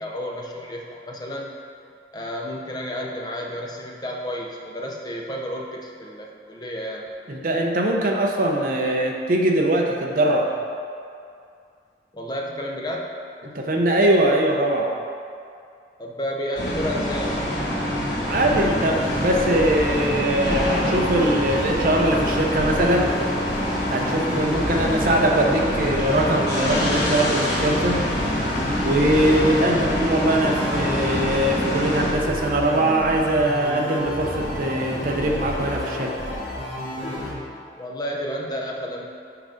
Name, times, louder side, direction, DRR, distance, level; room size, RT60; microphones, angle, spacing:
voice 1, 0.0-1.5 2.1-7.1 12.1-13.1 16.0-17.4 29.6-29.9 37.8-39.1, equal, 25° left, 0 dB, 0.6 m, -31 dB
voice 2, 7.3-10.5 13.4-14.9 18.3-23.1 23.9-28.1 28.8-36.1, right 1 dB, 50° right, 0 dB, 0.6 m, -21 dB
sound 1, 16.6-32.1, equal, 80° left, 1.3 m, -26 dB
sound 2, 18.2-37.3, left 1 dB, 60° left, 1.1 m, -31 dB
5.8 x 3.9 x 5.1 m, 2.4 s
head